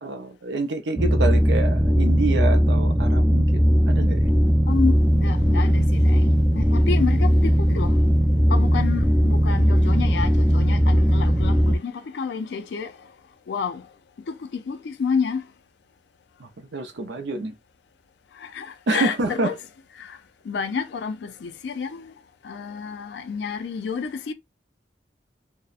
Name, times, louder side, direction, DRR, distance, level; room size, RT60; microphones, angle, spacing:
voice 1, 0.0-4.5 16.4-17.5 18.9-19.5, right 3 dB, 80° right, 0.5 m, -28 dB
sound 1, 1.0-11.8, equal, 10° right, 0.3 m, -18 dB
voice 2, 4.7-8.0 8.5-12.9 13.5-13.8 14.3-15.4 18.4-19.6 20.0-20.2 20.5-22.1 22.4-24.3, left 5 dB, 70° left, 0.4 m, -29 dB
2.7 x 2.0 x 2.3 m
head